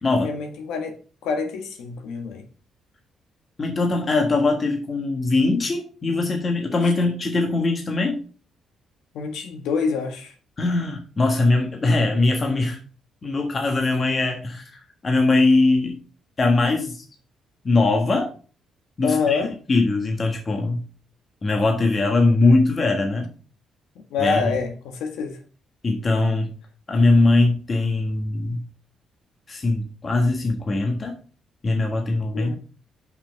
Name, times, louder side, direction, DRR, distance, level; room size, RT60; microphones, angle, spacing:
voice 1, 0.2-1.0 1.2-2.4 6.8-6.9 9.1-10.3 19.0-19.6 24.0-25.4 32.3-32.6, left 5 dB, 85° left, 1.7 m, -26 dB
voice 2, 3.6-8.2 10.6-12.8 13.2-14.7 15.0-16.0 16.4-17.0 17.6-18.3 19.0-20.8 21.4-23.3 24.2-24.5 25.8-26.5 26.9-28.6 29.5-31.1 31.6-32.6, left 2 dB, 35° left, 1.5 m, -21 dB
5.8 x 5.7 x 5.3 m
cardioid pair, 90°, 0 cm